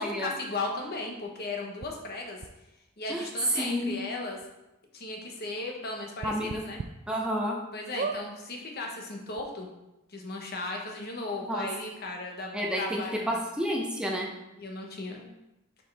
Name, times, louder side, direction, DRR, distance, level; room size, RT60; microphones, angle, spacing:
voice 1, 0.0-2.4 3.0-4.4 4.9-6.8 7.7-9.7 10.1-13.4 14.6-15.3, left 2 dB, 50° left, 1 dB, 1.1 m, -36 dB
sound 1, 1.8-1.9 2.4-2.5 3.5-3.6 3.9-4.0 4.4-4.5 6.2-6.9 7.4-7.5 7.9-8.2 9.1-9.2 9.3-9.4, right 4 dB, 40° right, 0.3 m, -34 dB
voice 2, 3.5-4.0 6.2-6.6 7.1-7.6 11.5-11.7 12.5-14.3, equal, 5° right, -2 dB, 0.7 m, -30 dB
7.0 x 4.5 x 3.4 m, 0.94 s
head